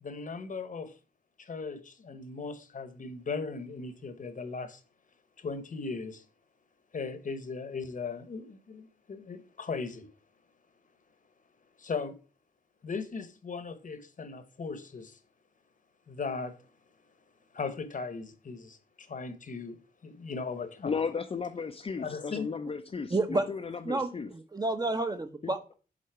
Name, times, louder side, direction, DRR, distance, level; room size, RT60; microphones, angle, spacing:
voice 1, 0.0-0.9 1.4-4.8 5.4-6.2 6.9-10.1 11.8-12.2 12.8-15.2 16.1-16.6 17.5-19.8 20.0-20.9 22.0-22.5, left 4 dB, 55° left, 1.0 m, -38 dB
voice 2, 20.8-24.3 25.4-25.5, left 5 dB, 40° left, 0.5 m, -35 dB
voice 3, 23.1-23.4 23.8-25.7, right 2 dB, 25° right, 0.8 m, -30 dB
7.6 x 4.0 x 4.6 m
wide cardioid pair, 135°, 16 cm